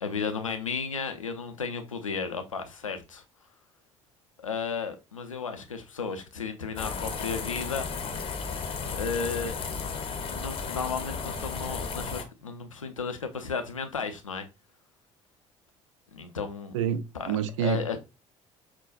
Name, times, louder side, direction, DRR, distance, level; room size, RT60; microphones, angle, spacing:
voice 1, 0.0-3.2 4.4-7.9 8.9-9.6 10.3-14.5 16.1-16.8 17.1-18.0, left 5 dB, 85° left, 0.4 m, -34 dB
sound 1, 6.8-12.2, left 5 dB, 35° left, 0.7 m, -34 dB
voice 2, 16.7-18.0, right 9 dB, 70° right, 0.4 m, -28 dB
5.6 x 2.2 x 2.4 m
figure-of-eight pair, 55°, 16 cm